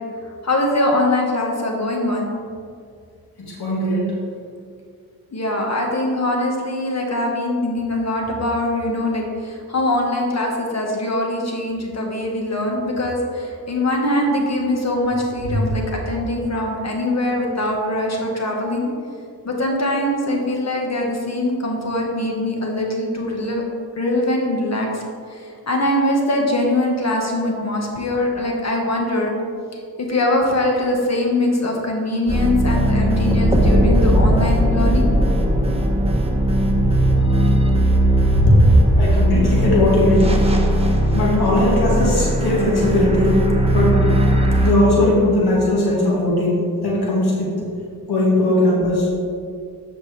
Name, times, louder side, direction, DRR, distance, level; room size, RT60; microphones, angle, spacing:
voice 1, 0.4-2.3 5.3-18.9 19.4-23.6 24.0-25.0 25.3-25.4 25.7-29.3 30.0-35.1, left 1 dB, 45° left, 0 dB, 1.5 m, -22 dB
voice 2, 3.4-4.1 15.5-15.6 38.5-38.6 39.0-40.3 41.1-43.4 43.7-44.0 44.6-47.5 48.1-49.1, left 1 dB, 90° left, -5 dB, 1.9 m, -18 dB
sound 1, 32.3-44.7, equal, 15° right, 1.1 m, -18 dB
8.1 x 6.1 x 3.4 m, 2.2 s
cardioid pair, 75°, 37 cm